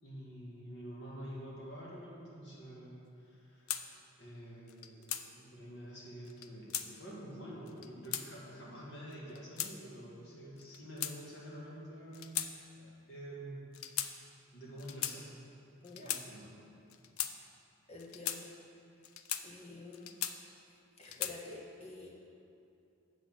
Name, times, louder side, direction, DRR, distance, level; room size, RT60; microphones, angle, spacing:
voice 1, 0.0-3.9 4.2-13.7 14.5-15.3 16.0-16.6, equal, 55° left, -5 dB, 2.1 m, -48 dB
sound 1, 3.7-3.8 4.7-5.2 6.3-6.9 7.7-8.3 9.1-9.7 10.6-11.5 12.1-12.5 12.8-13.0 13.7-14.1 14.8-15.2 15.8-16.2 16.9-17.3 18.0-18.4 19.0-19.4 19.9-20.6 21.0-21.4, left 10 dB, 85° left, 0.5 m, -38 dB
voice 2, 15.8-16.2 17.9-18.5 19.4-20.2 21.0-22.1, left 3 dB, 30° left, -2 dB, 1.2 m, -48 dB
7.8 x 6.3 x 6.2 m, 2.6 s
head